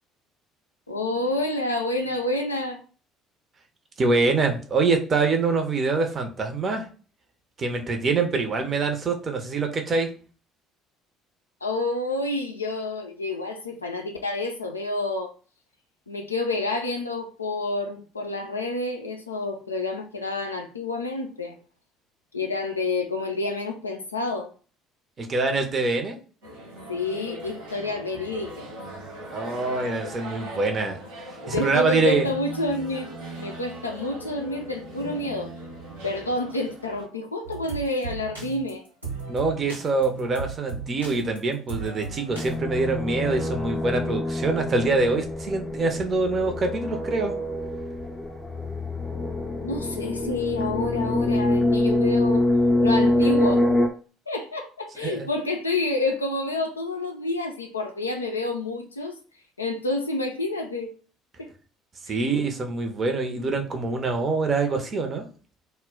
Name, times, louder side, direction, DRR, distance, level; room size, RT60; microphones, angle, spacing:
voice 1, 0.9-2.8 11.6-15.3 16.1-21.6 22.3-24.5 26.9-28.8 31.4-35.5 36.0-38.8 49.6-52.4 52.8-53.6 54.3-59.2 59.6-60.9 62.1-62.3, left 2 dB, 85° left, 0.3 m, -29 dB
voice 2, 4.0-6.9 7.6-10.1 25.2-26.2 29.3-31.0 31.5-32.3 39.3-47.3 55.0-55.3 62.0-65.3, right 3 dB, 35° right, 0.6 m, -25 dB
sound 1, 26.4-37.1, right 1 dB, 70° right, 1.1 m, -39 dB
sound 2, 37.4-42.6, right 5 dB, 90° right, 0.7 m, -36 dB
sound 3, 42.3-53.9, left 1 dB, 15° left, 0.5 m, -25 dB
2.1 x 2.1 x 3.7 m
figure-of-eight pair, 55°, 0 cm